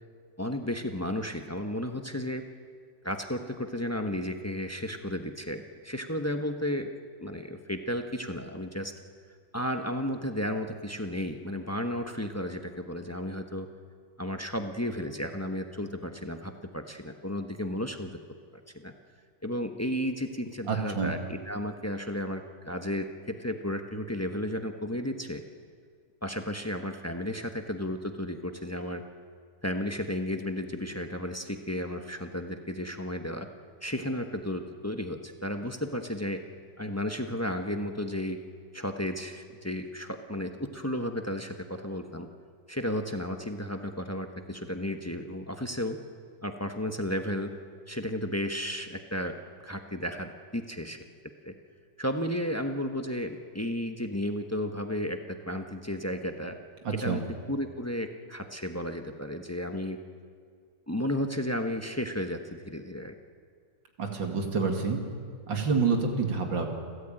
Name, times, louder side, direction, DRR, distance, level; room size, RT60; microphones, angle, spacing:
voice 1, 0.4-2.5 3.0-6.9 7.2-8.9 9.5-13.7 14.2-18.1 18.7-18.9 19.4-25.4 26.2-29.0 29.6-33.5 33.8-36.4 36.8-38.4 38.7-42.3 42.7-46.0 46.4-47.5 47.9-49.4 49.6-51.0 51.4-51.5 52.0-56.6 57.0-57.2 57.5-60.0 60.9-63.1, left 1 dB, 15° left, 5 dB, 0.6 m, -33 dB
voice 2, 20.7-21.1 56.8-57.2 64.0-65.0 65.5-66.7, right 5 dB, 70° right, 3 dB, 2.9 m, -27 dB
29.5 x 13.0 x 9.0 m, 2.1 s
omnidirectional pair, 2.2 m